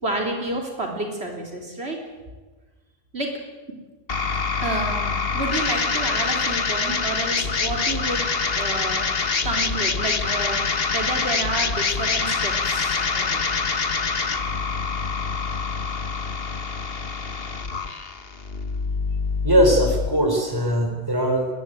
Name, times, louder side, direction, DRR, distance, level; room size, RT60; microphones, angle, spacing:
voice 1, 0.0-2.0 3.1-3.4 4.6-9.1 9.4-13.5, right 2 dB, 65° right, 1 dB, 4.0 m, -30 dB
sound 1, 4.1-20.1, left 4 dB, 55° left, 1.7 m, -25 dB
voice 2, 19.4-21.5, equal, 20° right, 4 dB, 4.6 m, -20 dB
22.0 x 21.0 x 9.4 m, 1.2 s
omnidirectional pair, 1.2 m